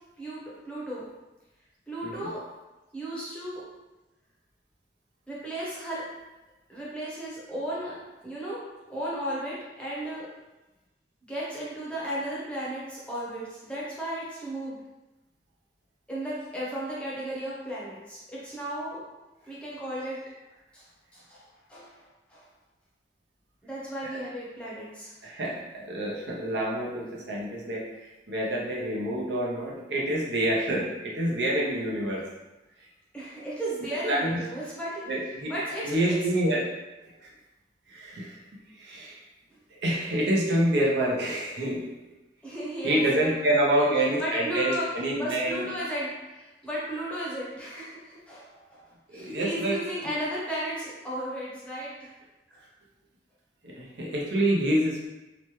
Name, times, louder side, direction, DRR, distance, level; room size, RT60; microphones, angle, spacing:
voice 1, 0.6-1.0 1.9-2.4 2.9-3.6 5.3-6.0 6.7-7.9 8.2-8.6 8.9-10.2 11.3-14.8 16.1-19.0 19.5-20.2 20.7-20.9 21.1-22.0 22.3-22.5 23.6-25.1 33.1-35.0 35.5-36.1 42.4-43.9 44.2-44.8 45.2-48.8 49.1-52.1, right 1 dB, 5° left, -8 dB, 0.7 m, -35 dB
voice 2, 25.2-32.2 34.0-34.4 35.1-35.5 35.8-36.6 37.2-37.3 37.9-38.4 38.8-39.2 39.7-41.9 42.8-45.7 49.1-49.8 53.6-55.1, right 1 dB, 70° right, -3 dB, 0.6 m, -27 dB
2.9 x 2.1 x 3.0 m, 1.1 s
head